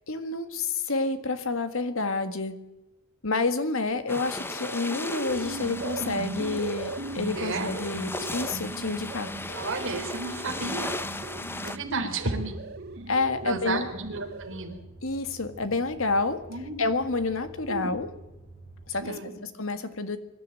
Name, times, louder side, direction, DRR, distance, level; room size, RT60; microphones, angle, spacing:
voice 1, 0.1-2.6 3.2-9.7 13.1-13.9 15.0-16.4 16.8-18.1 18.9-20.2, left 3 dB, 65° left, 10 dB, 1.8 m, -29 dB
sound 1, 4.1-11.8, left 2 dB, 10° left, 0.8 m, -37 dB
sound 2, 4.3-14.8, right 2 dB, 50° right, 1.1 m, -38 dB
sound 3, 5.3-19.0, right 2 dB, 45° left, 5.5 m, -48 dB
voice 2, 7.4-7.7 9.5-10.9 11.6-12.5 13.4-14.8 16.5-16.8 17.7-17.9 19.0-19.4, right 3 dB, 65° right, 2 dB, 3.9 m, -32 dB
24.5 x 12.0 x 9.0 m, 0.97 s
head